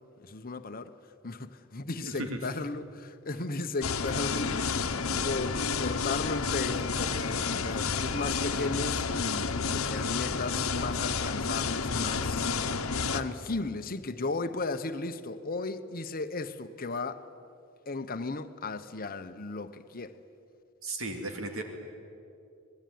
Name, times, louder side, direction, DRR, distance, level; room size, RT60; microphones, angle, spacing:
voice 1, 0.2-0.9 1.2-17.2 17.9-20.2, left 3 dB, 40° left, 1.1 m, -35 dB
voice 2, 2.0-2.4 20.8-21.6, right 2 dB, 65° right, 2.4 m, -35 dB
sound 1, 3.8-13.2, left 5 dB, 70° left, 1.2 m, -30 dB
25.5 x 20.0 x 9.5 m
head